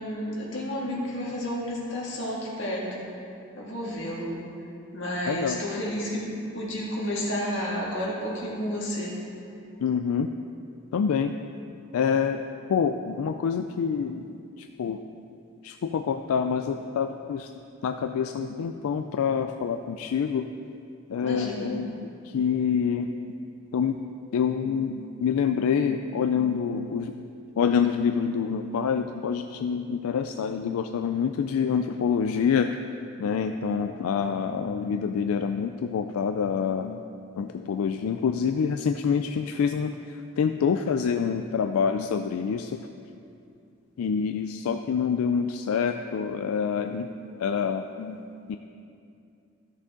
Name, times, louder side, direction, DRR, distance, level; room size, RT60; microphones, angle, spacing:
voice 1, 0.0-3.1 3.6-4.4 4.9-6.3 6.5-9.2 21.2-21.7, equal, 55° left, -4 dB, 2.0 m, -31 dB
voice 2, 5.3-5.6 9.8-10.3 10.9-11.3 11.9-12.4 12.7-15.0 15.6-17.5 17.8-20.5 21.1-23.1 23.7-24.0 24.3-27.3 27.6-32.8 33.2-37.0 37.4-42.8 44.0-47.1 47.4-48.2 48.5-48.6, left 6 dB, 85° left, 7 dB, 0.3 m, -26 dB
13.5 x 6.4 x 3.7 m, 2.5 s
head